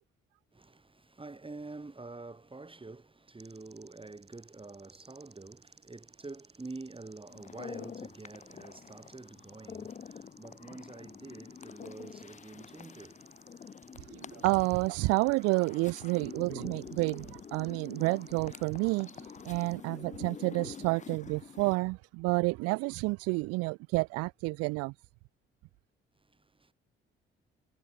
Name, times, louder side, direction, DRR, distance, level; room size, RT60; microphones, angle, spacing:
voice 1, 0.5-13.2 14.1-14.4 26.2-26.7, right 3 dB, 15° right, 2.5 m, -47 dB
sound 1, 3.4-19.8, right 5 dB, 35° right, 7.5 m, -59 dB
sound 2, 7.3-21.8, left 7 dB, 25° left, 0.6 m, -47 dB
voice 2, 14.4-19.1 19.5-24.9, right 26 dB, 55° right, 0.4 m, -29 dB
figure-of-eight pair, 40°, 30 cm